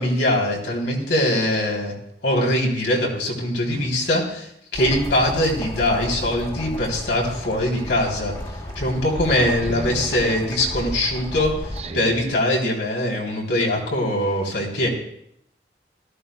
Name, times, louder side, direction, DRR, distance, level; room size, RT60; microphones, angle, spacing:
voice 1, 0.0-1.9 2.2-8.3 8.7-14.9, left 1 dB, 80° left, -2 dB, 3.2 m, -22 dB
sound 1, 4.7-11.8, left 1 dB, 25° left, 1.8 m, -33 dB
voice 2, 9.4-10.1 11.8-12.2, right 2 dB, 35° right, 8 dB, 0.6 m, -33 dB
18.0 x 14.0 x 2.2 m, 0.72 s
head